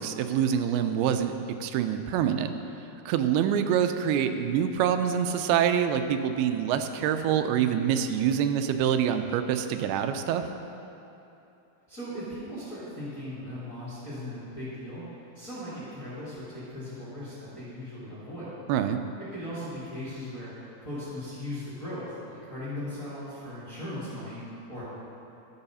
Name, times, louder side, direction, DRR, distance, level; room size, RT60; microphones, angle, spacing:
voice 1, 0.0-1.3 1.6-2.6 3.1-10.5 18.7-19.0, right 9 dB, 90° right, 8 dB, 2.5 m, -25 dB
voice 2, 11.9-15.0 15.3-18.6 19.2-24.8, left 1 dB, 30° left, -10 dB, 1.5 m, -38 dB
12.5 x 4.8 x 5.5 m, 2.9 s
omnidirectional pair, 4.4 m